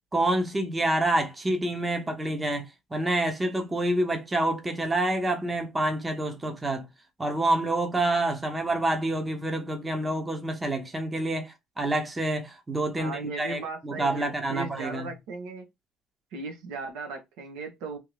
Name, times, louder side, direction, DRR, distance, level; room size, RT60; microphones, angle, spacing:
voice 1, 0.1-6.9 7.2-15.1, right 1 dB, 10° right, 0.7 m, -27 dB
voice 2, 12.9-15.7 16.3-18.0, right 3 dB, 90° right, 1.4 m, -37 dB
3.4 x 2.8 x 3.2 m
cardioid pair, 170°, 0 cm